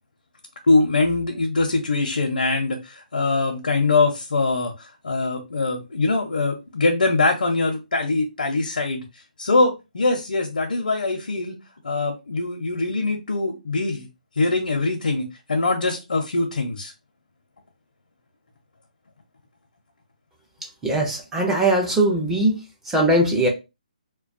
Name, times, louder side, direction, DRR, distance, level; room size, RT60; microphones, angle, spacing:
voice 1, 0.7-9.0 9.4-11.5 11.8-14.1 14.4-16.9, left 3 dB, 90° left, 0.6 m, -23 dB
voice 2, 20.8-22.6 22.9-23.5, right 1 dB, 5° right, 0.4 m, -20 dB
2.2 x 2.2 x 2.5 m
hypercardioid pair, 160°, 5 cm